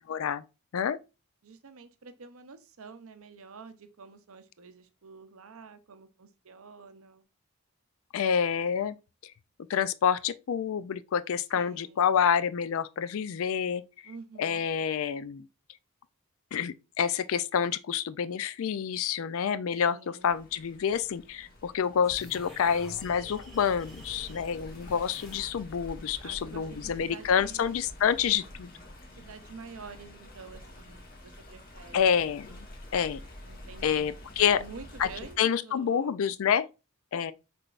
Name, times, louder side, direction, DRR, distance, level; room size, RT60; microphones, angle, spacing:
voice 1, 0.1-0.4 0.7-1.0 8.1-9.0 9.2-9.3 9.7-13.8 14.4-15.5 16.5-28.7 31.9-32.7 32.9-33.2 33.8-34.6 35.0-35.1 35.4-36.7 37.1-37.3, left 7 dB, 65° left, 0.3 m, -28 dB
voice 2, 1.4-7.2 11.5-12.2 14.0-14.6 19.9-20.3 26.2-27.7 29.2-32.1 33.4-34.1 34.4-36.2, right 5 dB, 65° right, 0.6 m, -48 dB
Stream, 20.2-35.4, left 1 dB, 40° left, 1.2 m, -48 dB
sound 1, 22.0-25.9, equal, ahead, 1.4 m, -48 dB
6.0 x 3.3 x 2.4 m
head